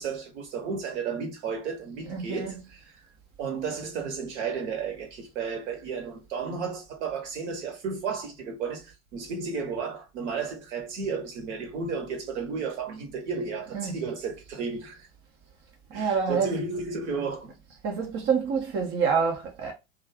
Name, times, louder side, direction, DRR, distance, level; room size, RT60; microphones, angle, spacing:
voice 1, 0.0-2.8 3.4-15.1 15.9-17.5, right 5 dB, 55° right, 1.1 m, -33 dB
voice 2, 2.1-2.6 12.9-13.0 13.7-14.0 15.9-16.6 17.8-19.7, right 6 dB, 30° right, 0.7 m, -27 dB
2.4 x 2.3 x 3.4 m
figure-of-eight pair, 90°, 42 cm